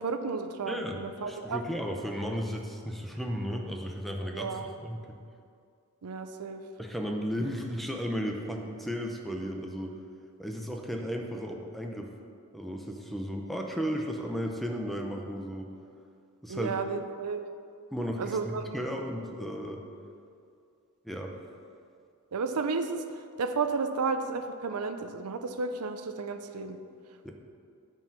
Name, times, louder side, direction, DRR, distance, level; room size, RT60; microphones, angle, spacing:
voice 1, 0.0-1.6 4.3-4.7 6.0-6.6 16.5-17.4 18.2-18.8 22.3-23.0 23.4-26.8, right 4 dB, 85° right, 8 dB, 0.6 m, -32 dB
voice 2, 0.7-1.0 1.3-5.2 6.8-9.9 10.4-12.1 12.5-15.7 16.4-16.7 17.9-19.8 21.0-21.3 27.2-27.3, equal, ahead, 1 dB, 0.7 m, -34 dB
9.3 x 4.7 x 5.9 m, 2.4 s
head